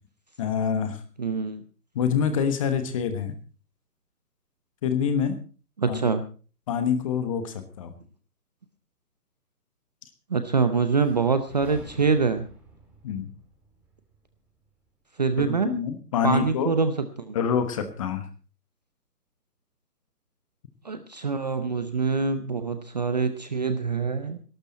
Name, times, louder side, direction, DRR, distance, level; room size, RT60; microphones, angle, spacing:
voice 1, 0.4-1.0 1.9-3.3 4.8-5.3 5.9-6.0 6.7-7.9 13.0-13.3 15.5-16.7 17.3-18.2, left 7 dB, 20° left, 10 dB, 1.2 m, -26 dB
voice 2, 1.2-1.6 5.8-6.2 10.3-12.5 15.2-15.7 16.2-16.9 17.2-17.3 20.8-24.4, right 4 dB, 25° right, 10 dB, 0.7 m, -25 dB
sound 1, 11.0-14.9, right 2 dB, 5° right, 1.8 m, -50 dB
19.0 x 12.0 x 4.1 m, 0.37 s
figure-of-eight pair, 150°, 47 cm